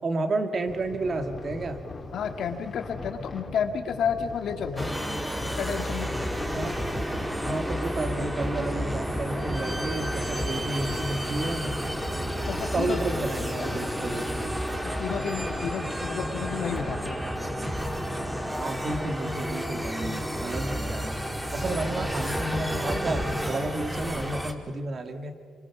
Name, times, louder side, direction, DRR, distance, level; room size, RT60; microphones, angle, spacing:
voice 1, 0.0-1.8 6.5-6.7 7.4-11.6 12.7-14.6 18.6-21.3 21.5-25.4, right 2 dB, 45° right, 7 dB, 2.2 m, -31 dB
sound 1, 0.7-17.1, left 3 dB, 30° left, 3.0 m, -40 dB
voice 2, 2.1-5.0 5.4-6.3 12.5-13.0 13.6-13.7 14.8-17.2, left 7 dB, 75° left, 6 dB, 1.9 m, -31 dB
sound 2, 4.8-24.5, equal, 5° right, 2.1 m, -31 dB
27.5 x 24.5 x 6.0 m, 2.1 s
cardioid pair, 110°, 0 cm